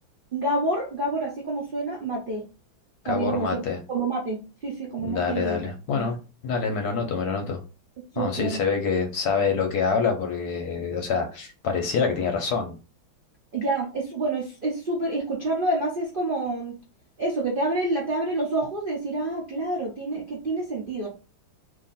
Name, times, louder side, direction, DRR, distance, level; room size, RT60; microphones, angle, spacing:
voice 1, 0.3-2.4 3.0-5.6 5.9-6.1 8.1-8.6 13.5-16.8 17.2-21.1, right 2 dB, 90° right, -2 dB, 0.4 m, -28 dB
voice 2, 3.0-3.8 5.0-6.2 6.4-7.6 8.2-12.8, left 5 dB, 65° left, 4 dB, 1.0 m, -26 dB
2.8 x 2.6 x 4.0 m, 0.33 s
omnidirectional pair, 2.1 m